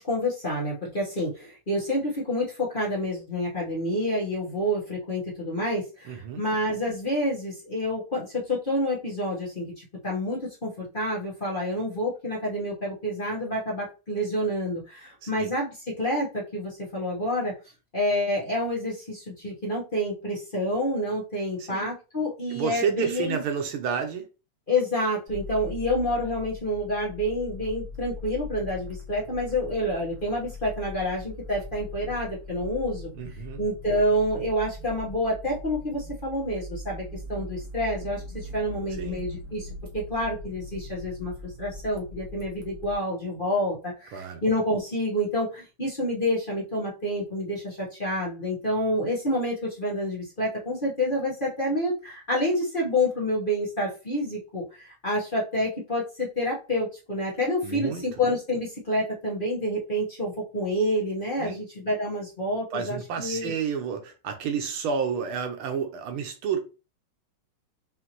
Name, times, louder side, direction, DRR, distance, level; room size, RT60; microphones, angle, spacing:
voice 1, 0.0-17.5 17.9-23.4 24.7-33.1 33.6-39.7 39.9-63.5, left 1 dB, 30° left, 1.1 m, -28 dB
voice 2, 6.1-6.4 15.2-15.5 21.6-21.9 22.5-24.3 33.1-33.6 39.0-39.2 44.1-44.4 57.6-58.0 61.4-61.6 62.7-66.6, right 6 dB, 80° right, 1.7 m, -30 dB
sound 1, 25.3-42.9, left 2 dB, 50° right, 0.9 m, -40 dB
5.6 x 2.9 x 3.0 m
omnidirectional pair, 2.3 m